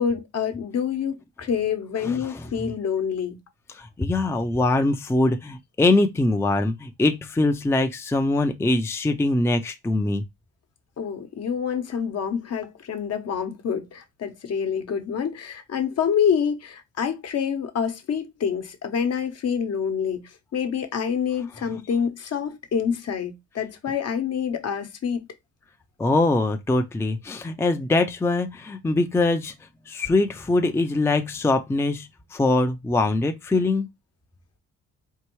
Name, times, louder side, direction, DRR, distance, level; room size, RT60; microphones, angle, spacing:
voice 1, 0.0-3.4 11.0-25.2, left 7 dB, 55° left, 1.0 m, -27 dB
voice 2, 2.0-2.7 3.7-10.2 21.7-21.8 26.0-29.5 29.9-33.9, left 2 dB, 10° left, 0.5 m, -23 dB
4.5 x 2.6 x 3.0 m
cardioid pair, 90°, 30 cm